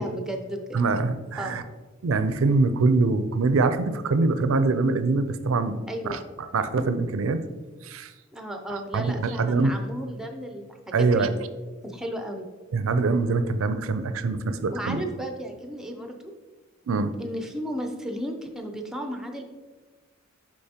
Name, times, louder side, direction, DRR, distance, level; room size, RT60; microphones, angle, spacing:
voice 1, 0.0-0.8 1.4-1.6 5.9-6.2 8.3-11.3 11.8-12.5 14.7-16.2 17.2-19.4, equal, ahead, 3 dB, 0.5 m, -34 dB
voice 2, 0.7-1.6 2.0-7.5 7.8-8.1 8.7-9.8 10.9-11.4 12.7-15.1 16.9-17.1, right 3 dB, 70° right, 11 dB, 0.4 m, -24 dB
6.7 x 5.2 x 2.8 m, 1.3 s
head